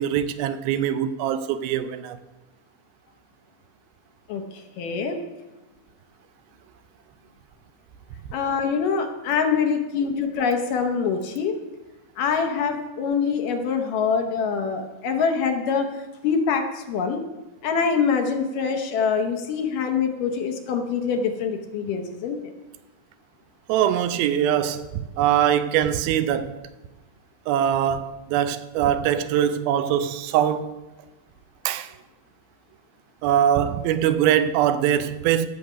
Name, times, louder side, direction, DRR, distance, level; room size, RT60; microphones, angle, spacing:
voice 1, 0.0-2.2 23.7-26.6 27.5-30.7 31.7-31.9 33.2-35.5, right 10 dB, 90° right, 2.5 m, -22 dB
voice 2, 4.3-5.2 8.3-11.6 12.2-15.9 16.2-17.3 17.6-22.5, left 6 dB, 70° left, 2.4 m, -24 dB
16.0 x 6.9 x 5.0 m
omnidirectional pair, 4.2 m